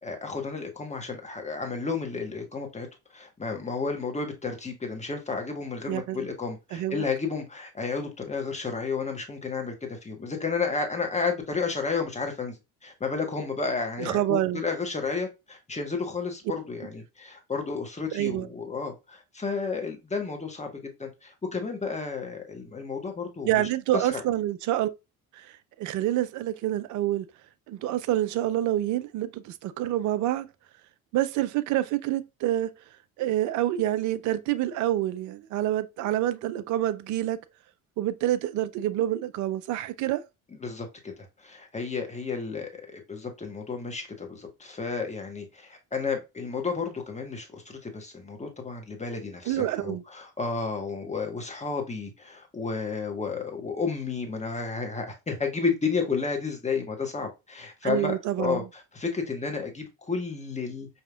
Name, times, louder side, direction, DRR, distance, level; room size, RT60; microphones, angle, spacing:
voice 1, 0.0-2.9 3.1-12.6 12.8-20.7 21.0-23.6 23.9-24.2 40.6-60.9, left 4 dB, 15° left, 1.2 m, -32 dB
voice 2, 5.9-6.2 6.7-7.0 14.0-14.6 18.1-18.5 23.5-24.9 25.3-27.3 27.7-30.5 31.1-32.7 33.2-37.4 38.0-40.3 49.5-50.0 57.8-58.7, right 13 dB, 45° right, 0.4 m, -27 dB
4.7 x 2.8 x 2.3 m
figure-of-eight pair, 55°, 44 cm